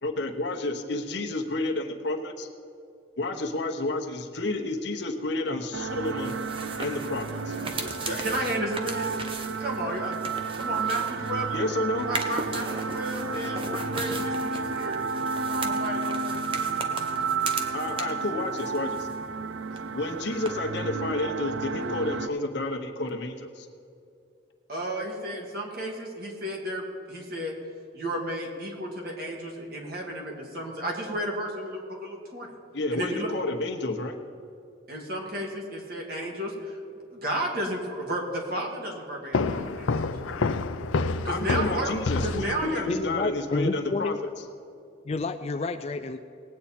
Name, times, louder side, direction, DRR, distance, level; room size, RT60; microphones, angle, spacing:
voice 1, 0.0-2.5 3.2-6.4 6.8-7.6 11.5-12.1 17.7-19.1 19.9-23.7 32.7-34.1 41.3-44.4, left 2 dB, 60° left, 3 dB, 1.0 m, -30 dB
sound 1, 5.7-22.3, right 4 dB, 70° right, 0.5 m, -31 dB
sound 2, 6.1-11.6 12.0-18.3 18.6-19.4 19.7-19.8 20.5-20.6, right 3 dB, 25° right, 0.8 m, -38 dB
voice 2, 7.5-9.2 9.6-10.1 10.5-11.5 12.0-16.4 24.7-27.5 27.9-32.5 32.9-33.3 34.9-36.8 37.1-39.9 40.3-40.4 41.2-41.9 42.2-42.8, right 1 dB, 50° right, 0 dB, 2.0 m, -33 dB
sound 3, 39.3-43.0, left 3 dB, 85° left, 0.5 m, -28 dB
voice 3, 42.9-44.2 45.1-46.2, left 3 dB, 30° left, 8 dB, 0.3 m, -29 dB
19.0 x 8.6 x 4.3 m, 2.5 s
head